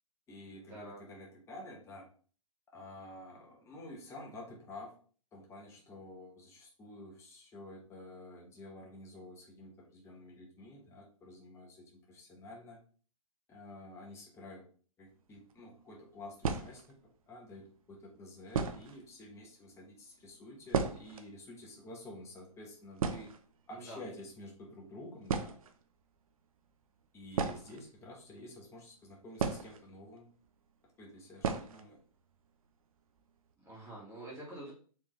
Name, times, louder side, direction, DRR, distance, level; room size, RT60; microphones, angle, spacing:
voice 1, 0.3-2.1 2.7-4.9 5.3-12.8 13.5-14.7 15.0-17.0 17.3-23.3 23.7-25.6 27.1-30.3 31.0-32.0, left 1 dB, 15° left, -1 dB, 1.0 m, -50 dB
sound 1, 15.4-15.5 16.4-17.1 17.9-18.0 18.5-19.0 19.3-19.4 19.7-19.8 20.2-21.3 21.6-21.7 21.9-22.2 22.6-22.7 23.0-23.9 24.8-24.9 25.2-25.8 27.3-28.4 29.4-30.2 30.5-30.6 31.4-31.9 32.2-32.3 32.6-32.7 33.2-33.5, right 5 dB, 70° right, 0.7 m, -35 dB
voice 2, 33.6-34.7, right 1 dB, 15° right, -6 dB, 1.8 m, -46 dB
4.4 x 3.4 x 3.1 m, 0.42 s
hypercardioid pair, 135°, 19 cm